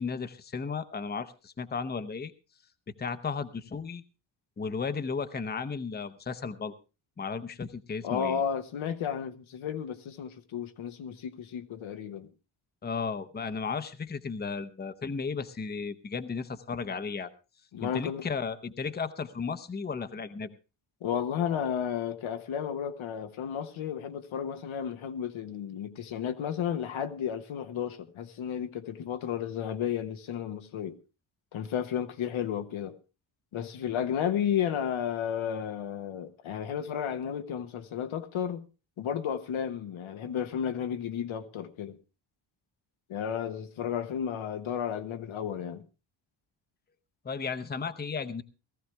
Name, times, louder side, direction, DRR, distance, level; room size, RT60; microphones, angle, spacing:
voice 1, 0.0-2.3 3.0-4.0 4.6-6.7 7.2-8.4 12.8-17.3 17.8-20.6 47.2-48.4, left 5 dB, 20° left, 0.7 m, -34 dB
voice 2, 8.0-12.3 17.7-18.3 21.0-31.0 31.5-33.0 33.5-38.7 39.0-42.0 43.1-45.8, left 8 dB, 85° left, 1.2 m, -33 dB
18.5 x 14.5 x 3.3 m
wide cardioid pair, 145°, 47 cm